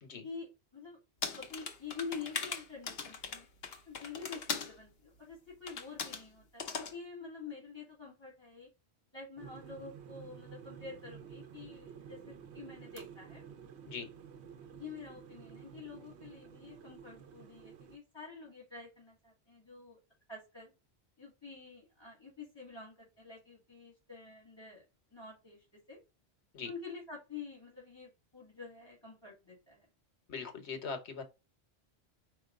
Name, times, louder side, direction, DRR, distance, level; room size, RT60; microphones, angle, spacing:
voice 1, 0.2-1.0 1.4-3.5 3.9-8.7 9.1-13.4 14.7-20.0 20.3-20.7 21.2-24.8 25.1-26.0 26.6-29.9, left 5 dB, 25° left, 2.0 m, -48 dB
sound 1, 1.2-4.7 5.7-6.2 6.6-6.9, left 5 dB, 65° left, 1.0 m, -39 dB
sound 2, 9.4-18.0, right 7 dB, 80° right, 1.0 m, -51 dB
voice 2, 30.3-31.2, left 5 dB, 90° left, 1.3 m, -41 dB
4.7 x 2.9 x 3.7 m
omnidirectional pair, 1.1 m